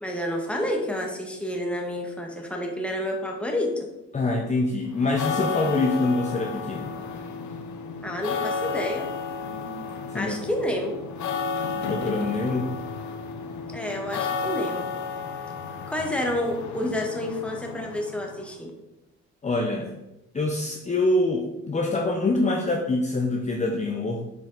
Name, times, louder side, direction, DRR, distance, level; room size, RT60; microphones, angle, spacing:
voice 1, 0.0-3.9 8.0-9.1 10.1-11.0 13.7-14.9 15.9-18.7, left 1 dB, 5° left, 1 dB, 1.5 m, -29 dB
voice 2, 4.1-6.9 10.1-10.3 11.9-12.8 19.4-19.9 20.3-24.2, left 2 dB, 25° left, 1 dB, 0.8 m, -25 dB
sound 1, 4.9-18.5, left 5 dB, 70° left, 1.0 m, -32 dB
7.4 x 5.0 x 4.0 m, 0.92 s
cardioid pair, 90°, 30 cm